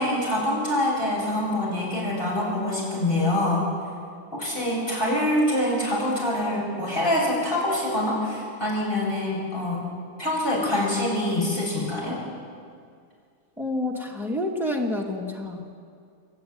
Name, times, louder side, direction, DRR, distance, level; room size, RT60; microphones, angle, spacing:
voice 1, 0.0-3.6 4.3-9.8 10.2-12.2, left 1 dB, 15° left, -4 dB, 7.3 m, -25 dB
voice 2, 13.6-15.6, left 1 dB, ahead, 0 dB, 1.7 m, -28 dB
27.5 x 11.5 x 9.6 m, 2.3 s
omnidirectional pair, 3.6 m